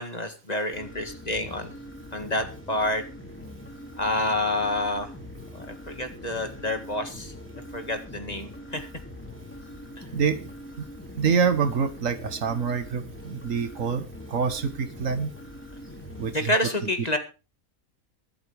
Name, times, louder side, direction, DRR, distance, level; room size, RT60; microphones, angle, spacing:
voice 1, 0.0-1.7 2.1-3.0 4.0-5.1 5.7-7.3 7.7-8.9 16.3-17.2, left 1 dB, 30° left, 6 dB, 2.1 m, -28 dB
sound 1, 0.7-16.3, left 1 dB, 10° left, 2.7 m, -43 dB
voice 2, 10.1-10.5 10.8-10.9 11.2-15.3 16.2-16.5, right 6 dB, 70° right, 11 dB, 1.6 m, -26 dB
23.5 x 8.2 x 3.5 m, 0.32 s
omnidirectional pair, 1.4 m